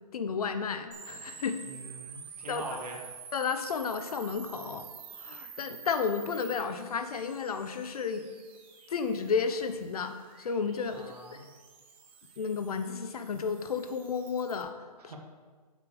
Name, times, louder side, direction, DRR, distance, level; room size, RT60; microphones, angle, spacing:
voice 1, 0.1-1.6 2.5-2.6 3.3-4.9 5.2-8.3 8.9-11.1 12.4-14.7 15.0-15.2, left 5 dB, 65° left, 9 dB, 0.6 m, -32 dB
sound 1, 0.9-14.6, right 7 dB, 15° right, 0.4 m, -49 dB
voice 2, 1.6-3.0 10.9-11.5 15.0-15.2, right 2 dB, 75° right, 1 dB, 1.4 m, -43 dB
7.4 x 3.3 x 4.9 m, 1.4 s
hypercardioid pair, 165°, 20 cm